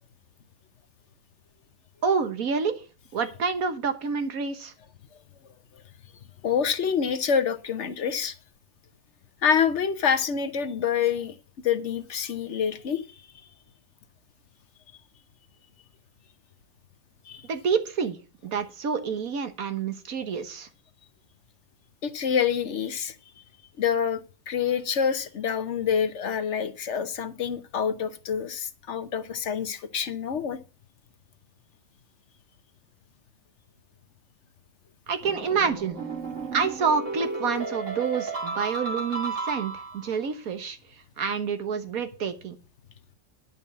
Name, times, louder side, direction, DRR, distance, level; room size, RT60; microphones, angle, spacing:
voice 1, 2.0-2.7 3.1-4.7 17.5-18.2 18.4-20.7 35.1-36.0 36.5-40.8 41.2-42.6, right 5 dB, 90° right, 1.7 m, -28 dB
voice 2, 6.4-8.4 9.4-11.4 11.6-13.2 17.3-17.5 22.0-23.2 23.8-30.6, left 7 dB, 60° left, 1.1 m, -27 dB
sound 1, 35.2-40.1, right 3 dB, 60° right, 2.9 m, -33 dB
10.5 x 5.4 x 7.1 m
omnidirectional pair, 1.5 m